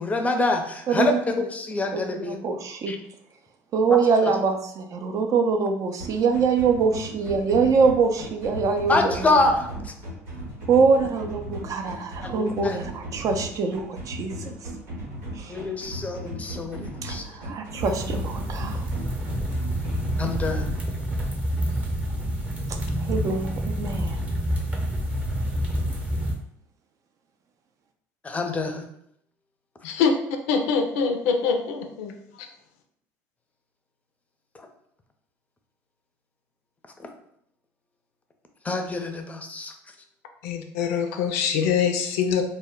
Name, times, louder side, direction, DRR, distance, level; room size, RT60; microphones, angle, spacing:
voice 1, 0.0-2.4 2.9-3.0 3.9-4.3 8.9-9.9 12.2-12.8 15.5-17.2 20.2-20.8 28.2-28.8 34.5-34.7 37.0-37.1 38.6-39.7, left 2 dB, 20° left, 5 dB, 0.5 m, -26 dB
voice 2, 0.9-1.2 1.9-2.9 3.7-9.2 10.7-14.3 15.4-15.5 17.0-18.8 23.0-24.2, right 5 dB, 50° right, 5 dB, 0.4 m, -24 dB
sound 1, 6.0-20.8, equal, 90° right, 1.1 m, -37 dB
sound 2, 17.8-26.3, equal, 15° right, 0.7 m, -28 dB
voice 3, 30.5-32.1 40.4-42.4, left 6 dB, 85° left, 5 dB, 0.4 m, -24 dB
2.1 x 2.1 x 3.7 m, 0.73 s
supercardioid pair, 80°, 8 cm